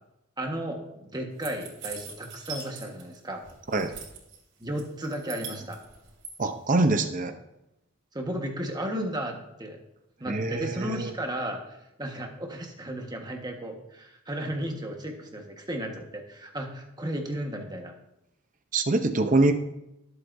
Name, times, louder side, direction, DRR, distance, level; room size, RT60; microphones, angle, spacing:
voice 1, 0.4-3.4 4.6-5.8 8.1-9.8 10.2-17.9, right 1 dB, 20° right, 2 dB, 1.4 m, -34 dB
sound 1, 1.4-3.2 3.4-4.4 4.8-6.3, right 6 dB, 60° right, 3.2 m, -41 dB
voice 2, 6.4-7.3 10.3-11.1 18.7-19.5, right 2 dB, 40° right, 7 dB, 0.7 m, -24 dB
19.5 x 7.9 x 2.7 m, 0.87 s
head